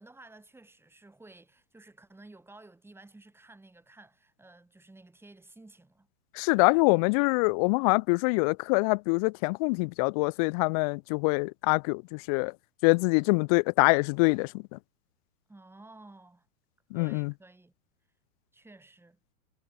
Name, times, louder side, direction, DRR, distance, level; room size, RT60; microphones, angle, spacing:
voice 1, 0.0-6.1 15.5-16.5 16.9-17.7 18.5-19.2, right 2 dB, 5° right, 6.9 m, -53 dB
voice 2, 6.4-12.5 12.8-14.5 16.9-17.3, left 31 dB, 30° left, 0.4 m, -25 dB
hypercardioid pair, 125°, 42 cm